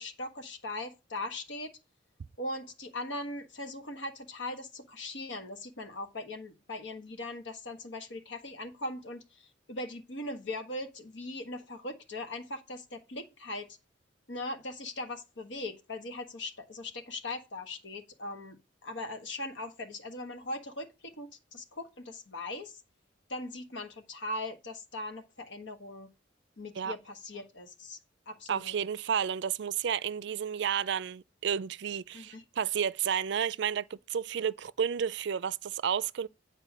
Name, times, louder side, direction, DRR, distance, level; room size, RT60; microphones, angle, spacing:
voice 1, 0.0-1.7 2.4-13.8 14.3-22.8 23.3-26.1 26.6-28.0 28.3-28.7 32.1-32.4, left 2 dB, 75° left, 1.4 m, -40 dB
voice 2, 28.5-36.3, right 8 dB, 65° right, 0.4 m, -31 dB
9.1 x 4.5 x 6.0 m
head